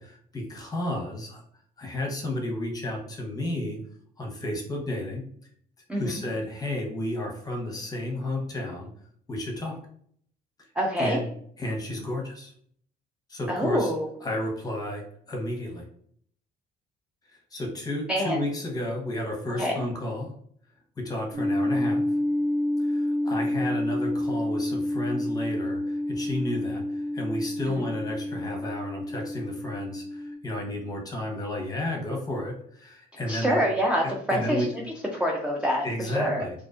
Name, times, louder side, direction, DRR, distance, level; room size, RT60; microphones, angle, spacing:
voice 1, 0.0-1.4 1.8-3.8 4.2-5.2 5.9-8.9 9.3-9.8 11.0-11.3 11.6-12.5 13.3-13.9 14.2-15.8 17.5-20.3 21.0-22.0 22.8-33.6 34.0-34.7 35.8-36.5, left 1 dB, 20° left, 0 dB, 0.8 m, -32 dB
voice 2, 5.9-6.2 10.8-11.2 13.5-14.1 18.1-18.4 19.6-19.8 27.7-27.8 33.3-34.8 35.1-36.4, equal, 5° right, -2 dB, 0.3 m, -26 dB
sound 1, 21.3-30.3, left 1 dB, 85° right, 0.7 m, -29 dB
2.4 x 2.2 x 2.4 m, 0.63 s
cardioid pair, 110°, 17 cm